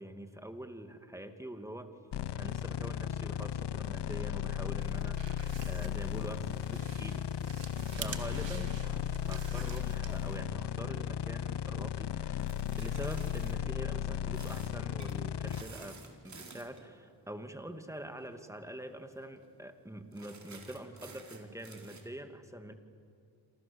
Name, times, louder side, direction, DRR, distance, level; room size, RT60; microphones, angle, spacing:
voice 1, 0.0-1.9 2.4-7.3 7.5-22.7, right 1 dB, 5° right, 7 dB, 2.4 m, -45 dB
sound 1, 2.1-15.6, left 10 dB, 70° left, 0.8 m, -35 dB
sound 2, 4.9-10.4, right 8 dB, 90° right, 2.0 m, -47 dB
sound 3, 7.5-9.1 9.6-11.1 12.4-13.6 14.3-14.7 15.0-15.2 15.5-16.9 18.2-18.4 18.7-18.8 19.1-19.5 20.1-22.0, right 3 dB, 40° right, 4.2 m, -53 dB
28.0 x 27.5 x 7.1 m, 2.5 s
cardioid pair, 80°, 43 cm